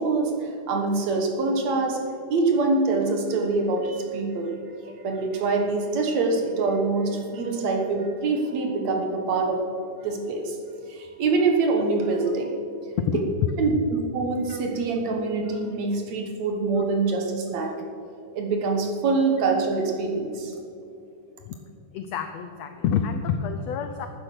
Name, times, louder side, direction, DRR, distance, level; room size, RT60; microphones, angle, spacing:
voice 1, 0.0-2.0 2.3-4.6 4.9-9.6 10.0-10.6 10.9-12.5 13.6-17.7 18.3-20.5, right 3 dB, 60° right, 2 dB, 2.4 m, -25 dB
voice 2, 21.9-24.1, left 7 dB, 80° left, 7 dB, 1.5 m, -28 dB
13.5 x 9.5 x 6.1 m, 2.6 s
omnidirectional pair, 3.8 m